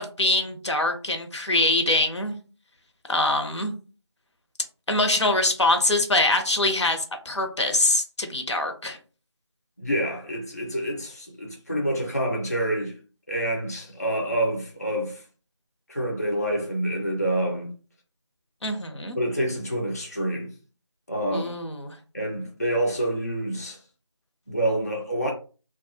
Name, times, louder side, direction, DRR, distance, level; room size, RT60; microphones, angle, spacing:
voice 1, 0.0-2.4 3.1-3.7 4.9-9.0 18.6-19.2 21.3-22.0, left 2 dB, 75° left, 0.6 m, -24 dB
voice 2, 9.8-13.0 13.3-15.2 15.9-17.7 19.1-20.5 21.1-21.6 22.1-23.8 24.5-25.3, right 1 dB, 35° left, 0.4 m, -27 dB
2.2 x 2.0 x 2.8 m
figure-of-eight pair, 175°, 15 cm